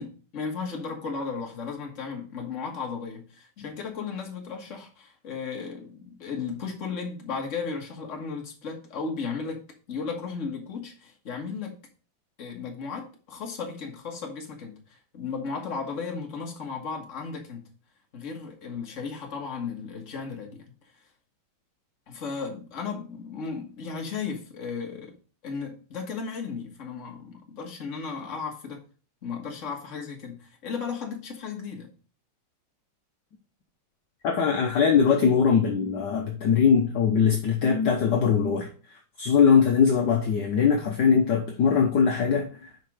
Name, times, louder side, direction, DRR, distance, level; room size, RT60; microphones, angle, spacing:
voice 1, 0.0-11.8 12.4-17.7 18.1-20.8 22.1-25.2 25.4-28.8 29.2-31.9, left 5 dB, 40° left, 1.7 m, -35 dB
voice 2, 34.2-38.7 39.2-42.7, left 6 dB, 60° left, 1.4 m, -21 dB
6.6 x 5.1 x 4.9 m
omnidirectional pair, 2.4 m